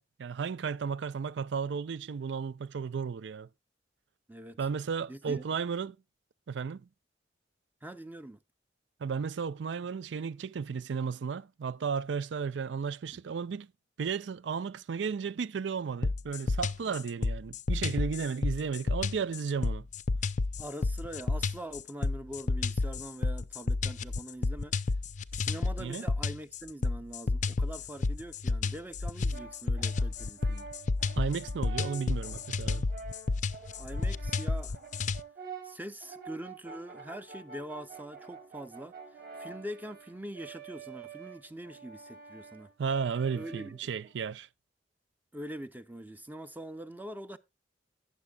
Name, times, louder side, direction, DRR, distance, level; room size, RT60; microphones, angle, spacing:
voice 1, 0.0-3.5 4.6-6.0 6.5-6.9 9.0-13.7 14.0-19.9 25.8-26.1 31.2-32.8 42.8-44.5, right 6 dB, 85° right, 0.4 m, -34 dB
voice 2, 4.3-4.6 5.1-5.4 7.8-8.4 20.6-24.8 25.3-30.7 33.8-34.8 35.6-38.9 39.4-42.7 43.3-43.9 45.3-47.4, right 1 dB, 10° right, 0.5 m, -43 dB
sound 1, 16.0-35.2, left 3 dB, 45° left, 0.5 m, -31 dB
Brass instrument, 29.3-44.1, right 5 dB, 55° right, 2.2 m, -48 dB
18.5 x 7.1 x 2.3 m
head